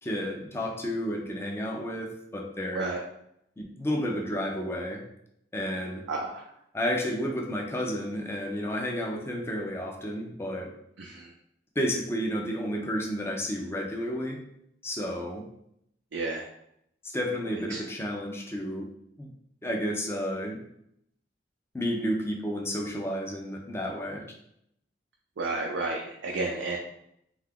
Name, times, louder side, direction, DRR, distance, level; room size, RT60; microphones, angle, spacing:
voice 1, 0.0-2.9 3.6-5.0 5.5-6.0 6.7-10.7 11.8-14.4 14.8-15.5 17.1-18.9 19.2-19.3 19.6-20.6 21.7-24.2, equal, 15° left, 0 dB, 0.4 m, -31 dB
voice 2, 6.1-6.4 11.0-11.3 16.1-16.5 17.7-17.8 25.4-26.8, right 3 dB, 85° right, -1 dB, 0.4 m, -31 dB
2.8 x 2.3 x 3.5 m, 0.75 s
head